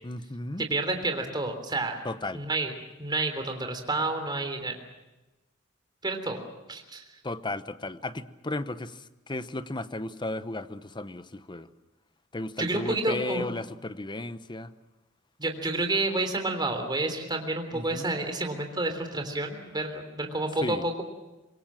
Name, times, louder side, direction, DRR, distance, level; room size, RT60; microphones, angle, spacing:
voice 1, 0.0-0.6 2.0-2.4 7.2-11.7 12.3-14.7 17.7-18.1 20.6-20.9, left 2 dB, 20° left, 13 dB, 0.9 m, -34 dB
voice 2, 0.6-2.0 2.3-2.7 3.0-4.7 6.0-6.4 6.7-7.0 12.6-13.4 15.4-21.0, right 2 dB, 20° right, 5 dB, 3.4 m, -29 dB
25.5 x 22.5 x 7.5 m, 1.1 s
head